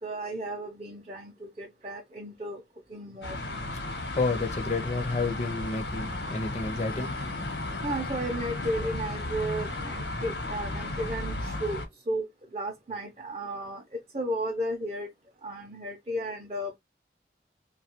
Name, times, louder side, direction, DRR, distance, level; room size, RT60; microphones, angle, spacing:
voice 1, 0.0-2.6 2.9-3.4 7.8-12.3 12.5-13.8 14.1-15.1 15.4-16.8, right 1 dB, 35° right, 0.5 m, -34 dB
sound 1, 3.2-11.9, left 2 dB, 80° left, 0.9 m, -34 dB
voice 2, 3.8-7.1, left 3 dB, 40° left, 0.5 m, -30 dB
2.7 x 2.3 x 2.8 m
head